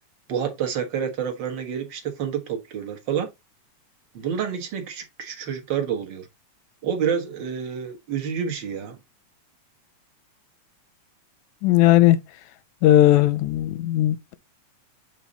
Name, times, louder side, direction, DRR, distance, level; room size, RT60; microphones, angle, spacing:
voice 1, 0.3-3.3 4.1-6.3 6.8-9.0, right 7 dB, 50° right, 1.7 m, -28 dB
voice 2, 11.6-12.2 12.8-14.3, left 14 dB, 90° left, 2.0 m, -17 dB
8.6 x 3.5 x 4.0 m
omnidirectional pair, 3.3 m